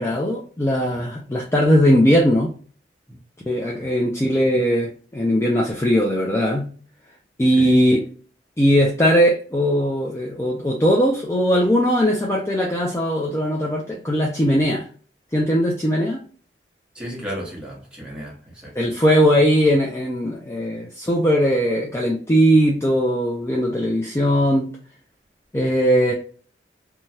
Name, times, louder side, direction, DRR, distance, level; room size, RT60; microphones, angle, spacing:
voice 1, 0.0-2.5 3.5-6.7 7.4-8.0 8.6-14.9 15.3-16.2 18.8-24.7 25.5-26.1, equal, 15° left, 0.4 m, -19 dB
voice 2, 7.5-7.8 16.9-18.9, equal, 5° right, 1.0 m, -35 dB
3.1 x 2.2 x 2.7 m
head